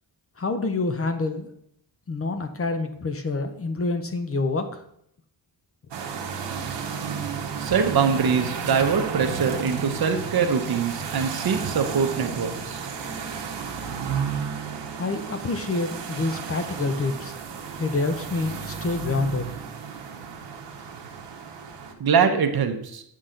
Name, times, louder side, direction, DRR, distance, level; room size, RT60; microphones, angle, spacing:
voice 1, 0.4-1.5 2.1-4.8 15.0-17.3 17.8-19.5, left 3 dB, 35° left, 8 dB, 0.7 m, -27 dB
sound 1, 5.9-21.9, right 6 dB, 75° right, 1.2 m, -33 dB
voice 2, 7.6-12.8 22.0-23.0, right 6 dB, 60° right, 7 dB, 0.9 m, -23 dB
8.3 x 6.3 x 3.8 m, 0.72 s
wide cardioid pair, 160°, 42 cm